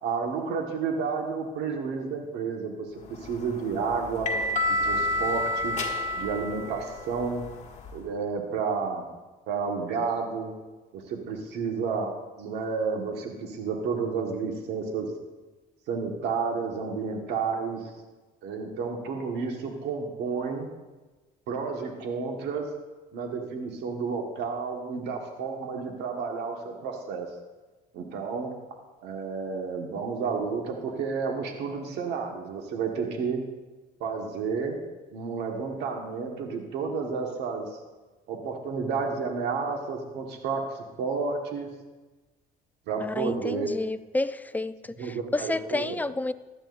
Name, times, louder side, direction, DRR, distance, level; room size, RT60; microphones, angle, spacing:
voice 1, 0.0-4.3 4.8-5.8 6.1-7.4 7.9-9.1 9.5-10.5 10.9-15.1 15.9-17.9 18.4-20.7 21.5-22.7 23.1-27.3 27.9-28.5 29.0-33.4 34.0-34.8 35.1-37.8 38.3-41.7 42.9-43.8 45.0-46.0, right 5 dB, 80° right, 2 dB, 1.5 m, -31 dB
sound 1, 3.2-8.0, left 1 dB, 45° left, 1.6 m, -30 dB
voice 2, 43.0-44.7 45.3-46.3, left 2 dB, 10° left, 13 dB, 0.3 m, -29 dB
16.5 x 11.5 x 2.6 m, 1.2 s
cardioid pair, 110°, 17 cm